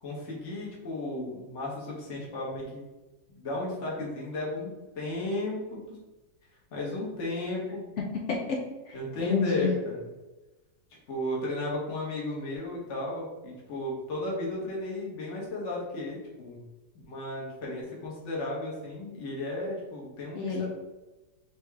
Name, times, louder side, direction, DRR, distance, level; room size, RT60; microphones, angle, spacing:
voice 1, 0.0-2.8 3.3-6.0 6.7-7.9 8.9-10.1 11.1-16.6 17.1-20.7, left 1 dB, 45° left, -4 dB, 1.4 m, -34 dB
voice 2, 8.0-9.7 20.4-20.7, left 5 dB, 70° left, 0 dB, 0.7 m, -30 dB
4.7 x 3.0 x 3.4 m, 1.1 s
omnidirectional pair, 2.0 m